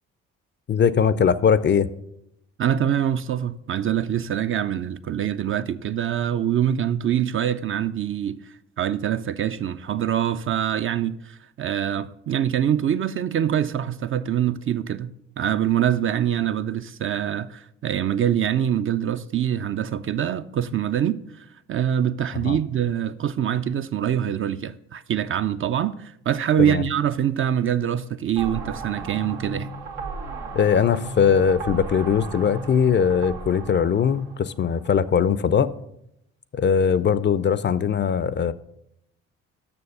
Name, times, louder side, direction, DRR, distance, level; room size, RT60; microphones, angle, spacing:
voice 1, 0.7-1.9 22.4-22.6 26.6-26.8 30.5-35.7 36.5-38.5, left 7 dB, 35° left, 0.4 m, -20 dB
voice 2, 2.6-15.1 15.4-29.7, right 10 dB, 40° right, 0.4 m, -24 dB
sound 1, 28.4-35.1, right 3 dB, 85° right, 0.9 m, -35 dB
6.9 x 6.3 x 5.5 m
hypercardioid pair, 50°, 34 cm